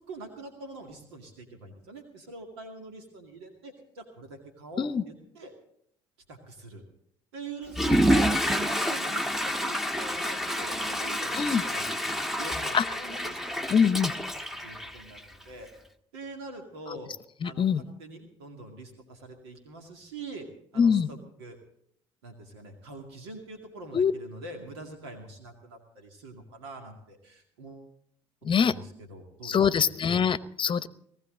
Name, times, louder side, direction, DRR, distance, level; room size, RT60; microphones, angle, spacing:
voice 1, 0.1-5.5 6.3-6.8 7.3-13.9 14.6-15.7 16.1-17.1 17.4-20.5 20.7-21.6 22.2-27.9 28.6-29.9, right 2 dB, 85° right, 4 dB, 2.3 m, -44 dB
Water / Toilet flush, 7.7-15.4, equal, ahead, 1.2 m, -28 dB
voice 2, 13.7-14.1 16.9-17.0 17.4-17.8 20.8-21.1 23.9-24.1 28.4-28.7 29.4-30.9, left 7 dB, 40° left, 16 dB, 0.9 m, -24 dB
19.0 x 15.5 x 3.9 m, 0.68 s
hypercardioid pair, 60°, 14 cm